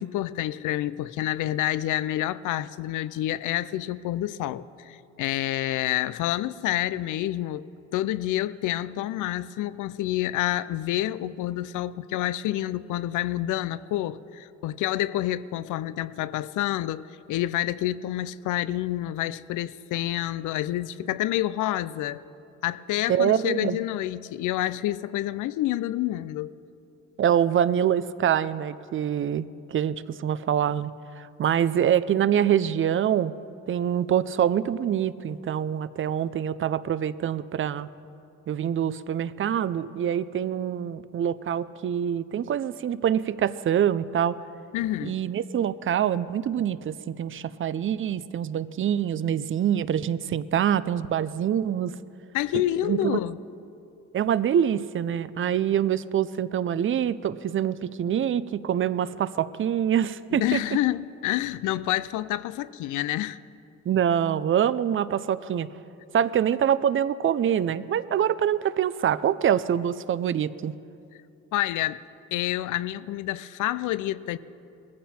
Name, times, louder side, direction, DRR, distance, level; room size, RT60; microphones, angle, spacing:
voice 1, 0.0-7.7 7.9-22.2 22.6-26.5 44.7-45.2 52.3-53.4 60.3-63.4 71.5-72.0 72.3-74.4, left 14 dB, 85° left, 0.5 m, -28 dB
voice 2, 23.1-23.8 27.2-30.9 31.2-33.3 33.7-37.9 38.5-44.4 45.0-51.9 52.8-53.2 54.1-60.6 63.9-65.7 66.1-70.7, right 9 dB, 45° right, 0.5 m, -25 dB
19.5 x 15.0 x 4.3 m
cardioid pair, 90°, 30 cm